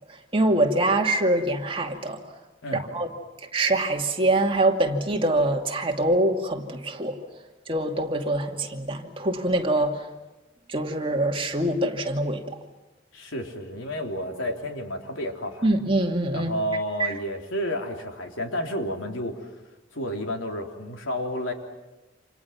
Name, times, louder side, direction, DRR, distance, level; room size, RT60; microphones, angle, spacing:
voice 1, 0.3-2.2 2.7-3.1 3.5-7.2 7.7-10.1 10.7-12.6 15.6-16.5 17.0-17.1, right 1 dB, 30° right, 2 dB, 2.5 m, -24 dB
voice 2, 13.1-15.7 16.3-19.5 19.9-21.5, equal, 85° left, 3 dB, 3.8 m, -31 dB
29.5 x 27.5 x 6.0 m, 1.1 s
head